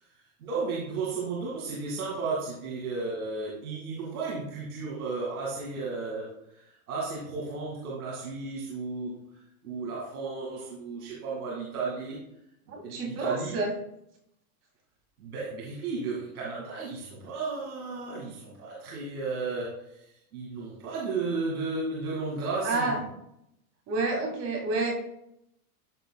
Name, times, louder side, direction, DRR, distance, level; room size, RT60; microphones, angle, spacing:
voice 1, 0.4-9.1 9.6-12.2 12.8-13.6 15.2-20.0 20.3-23.0, right 4 dB, 90° right, -4 dB, 2.3 m, -34 dB
voice 2, 12.7-13.7 22.6-23.0 23.9-24.9, right 3 dB, 35° right, 0 dB, 2.4 m, -29 dB
13.5 x 4.5 x 2.3 m, 0.79 s
supercardioid pair, 130°, 43 cm